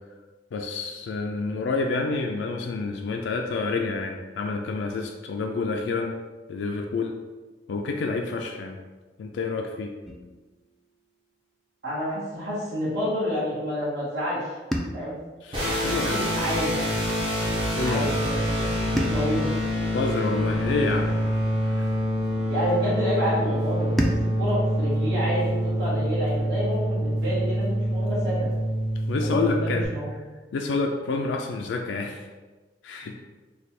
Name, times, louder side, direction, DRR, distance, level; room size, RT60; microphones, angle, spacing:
voice 1, 0.5-6.2 6.5-7.2 7.7-8.8 9.2-9.9 15.4-16.3 17.7-18.1 19.9-21.1 21.8-21.9 29.1-29.9 30.5-32.2 32.8-33.2, left 3 dB, 75° left, 2 dB, 0.3 m, -28 dB
sound 1, 10.1-12.3 14.7-17.0 19.0-21.4 24.0-26.5, equal, ahead, 0.3 m, -35 dB
voice 2, 11.8-14.5 14.9-15.2 15.9-16.8 17.8-19.5 22.5-28.5 29.3-30.2, equal, 65° right, -9 dB, 1.3 m, -29 dB
sound 2, 15.5-29.9, equal, 30° right, 0.9 m, -26 dB
3.2 x 2.3 x 4.2 m, 1.3 s
head